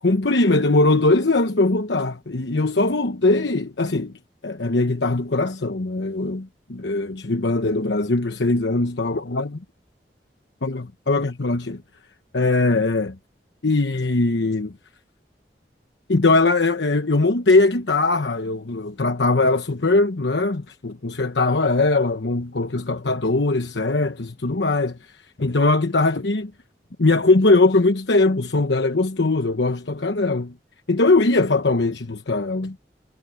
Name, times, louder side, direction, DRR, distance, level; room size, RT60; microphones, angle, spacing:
voice 1, 0.0-4.1 4.4-9.6 10.6-11.8 12.3-13.2 13.6-14.7 16.1-25.1 25.4-26.5 27.0-30.5 30.9-32.8, left 2 dB, 90° left, 1.1 m, -20 dB
head